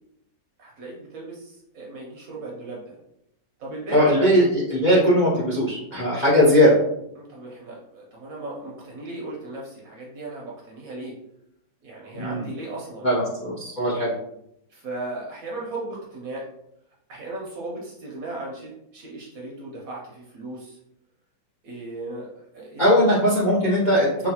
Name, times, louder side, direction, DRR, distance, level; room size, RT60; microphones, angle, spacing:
voice 1, 0.6-3.0 3.6-4.2 7.1-11.1 11.8-13.1 14.7-16.5 17.1-20.8 21.6-22.9, right 2 dB, 60° right, -3 dB, 1.0 m, -36 dB
voice 2, 3.9-6.8 12.1-12.5 13.0-14.1 22.8-24.1, equal, 40° left, -7 dB, 0.6 m, -19 dB
3.9 x 2.2 x 2.8 m, 0.78 s
omnidirectional pair, 1.9 m